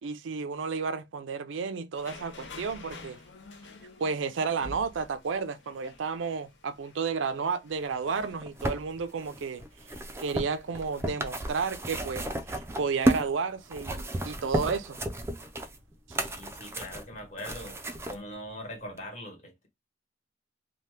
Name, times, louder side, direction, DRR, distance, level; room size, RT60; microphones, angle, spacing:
voice 1, 0.0-3.2 4.0-9.6 10.2-12.2 12.5-15.0, right 5 dB, 85° right, 0.4 m, -32 dB
sound 1, 1.9-12.9, left 2 dB, 70° left, 0.6 m, -51 dB
sound 2, 8.2-13.3 13.7-18.2 19.0-19.1, right 1 dB, 15° right, 0.3 m, -33 dB
voice 2, 16.3-17.8 18.1-19.7, left 1 dB, 40° left, 1.2 m, -41 dB
2.8 x 2.2 x 3.2 m
head